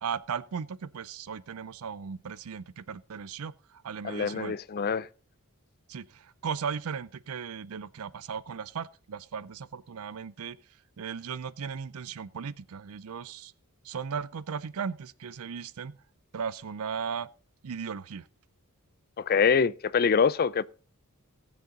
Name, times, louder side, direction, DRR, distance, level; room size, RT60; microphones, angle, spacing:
voice 1, 0.0-4.5 5.9-10.6 11.0-13.5 13.8-16.0 16.3-17.3 17.6-18.2, right 6 dB, 70° right, 0.5 m, -36 dB
voice 2, 4.0-5.1 19.2-20.6, left 6 dB, 45° left, 0.5 m, -25 dB
19.5 x 7.0 x 3.9 m
head